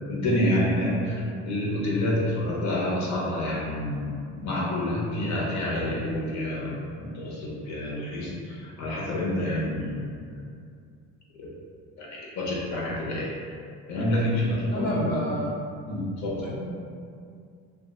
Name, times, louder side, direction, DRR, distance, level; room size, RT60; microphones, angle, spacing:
voice 1, 0.1-10.1 11.4-11.6 12.0-13.3 13.9-15.3 15.8-16.5, left 1 dB, 55° left, -5 dB, 0.8 m, -28 dB
voice 2, 14.7-15.5 16.4-16.7, equal, 25° left, -7 dB, 1.0 m, -28 dB
2.8 x 2.4 x 2.3 m, 2.3 s
supercardioid pair, 90°, 33 cm